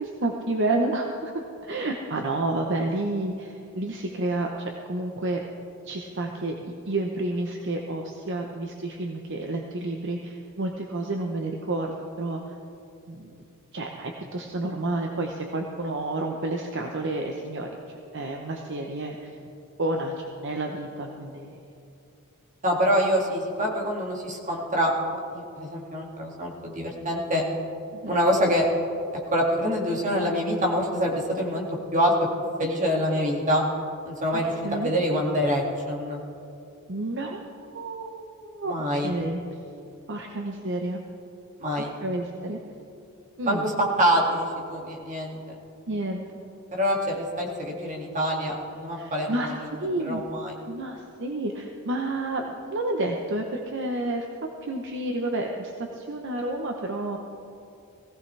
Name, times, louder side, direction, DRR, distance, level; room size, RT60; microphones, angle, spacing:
voice 1, 0.0-1.3 1.6-5.4 5.8-12.5 13.1-13.5 13.7-19.4 19.8-21.6 27.9-28.1 34.3-35.0 36.9-38.7 39.0-39.6 40.1-41.0 41.8-42.6 43.4-43.7 45.9-46.2 48.9-49.5 49.8-50.2 50.7-54.3 54.6-57.2, right 2 dB, 55° right, 2 dB, 0.9 m, -30 dB
voice 2, 22.6-24.9 25.3-27.4 28.1-28.7 29.3-31.6 31.9-32.1 32.6-33.6 34.1-36.2 38.7-39.1 41.6-41.9 43.5-45.4 46.7-49.7 50.0-50.5, equal, 35° right, -1 dB, 2.3 m, -25 dB
19.5 x 16.5 x 3.4 m, 2.7 s
head